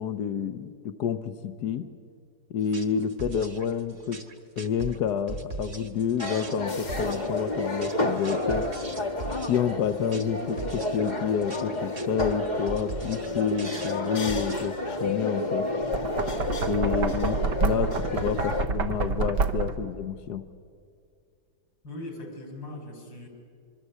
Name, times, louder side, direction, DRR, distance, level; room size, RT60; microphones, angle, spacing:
voice 1, 0.0-1.9 2.5-4.2 4.6-8.6 9.5-15.7 16.6-20.4, left 7 dB, 65° left, 9 dB, 1.3 m, -29 dB
sound 1, 2.6-14.7, right 3 dB, 35° right, 1.7 m, -40 dB
sound 2, 6.2-18.7, left 2 dB, 30° left, 1.1 m, -30 dB
Knock, 15.8-19.9, right 4 dB, 70° right, 1.8 m, -28 dB
voice 2, 21.8-23.3, left 1 dB, 80° left, 4 dB, 5.4 m, -39 dB
25.5 x 23.5 x 8.1 m, 2.3 s
omnidirectional pair, 2.0 m